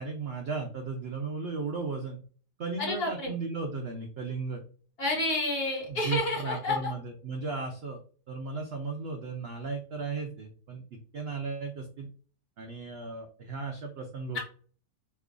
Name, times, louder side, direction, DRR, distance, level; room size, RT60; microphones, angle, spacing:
voice 1, 0.0-2.2 2.6-4.6 5.9-8.0 8.3-10.8 11.1-12.1 12.6-14.4, right 4 dB, 70° right, 3 dB, 0.6 m, -35 dB
voice 2, 2.8-3.3 5.0-6.8, left 2 dB, 40° left, -2 dB, 1.5 m, -29 dB
3.1 x 2.4 x 3.6 m, 0.42 s
omnidirectional pair, 1.7 m